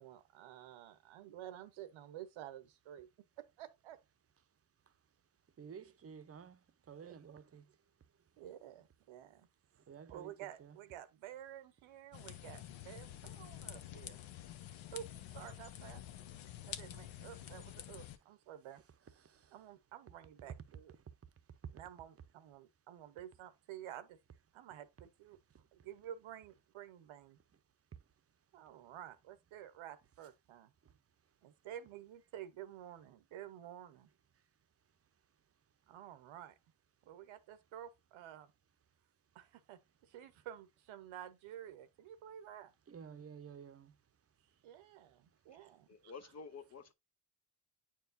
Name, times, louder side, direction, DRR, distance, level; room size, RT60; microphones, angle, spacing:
voice 1, 0.0-3.1 3.4-4.0 7.0-7.2 8.4-9.5 10.1-14.2 14.9-15.1 15.3-16.0 16.7-18.8 19.5-20.9 21.7-24.2 24.5-25.4 25.7-27.4 28.5-30.7 31.4-34.1 35.9-36.5 37.1-38.5 39.3-39.8 40.1-42.7 44.6-45.9, right 11 dB, 75° right, 1.0 m, -51 dB
voice 2, 5.6-7.8 8.3-8.5 9.7-10.8 17.2-17.5 18.2-18.3 18.8-19.7 21.0-21.1 21.5-21.7 25.5-25.9 30.8-31.0 34.3-34.4 42.9-44.0 45.3-45.4, right 7 dB, 30° right, 0.7 m, -54 dB
sound 1, 12.1-18.2, left 12 dB, 70° left, 0.8 m, -49 dB
voice 3, 45.6-46.9, left 5 dB, 35° left, 0.6 m, -51 dB
8.8 x 4.7 x 2.6 m
cardioid pair, 80°, 49 cm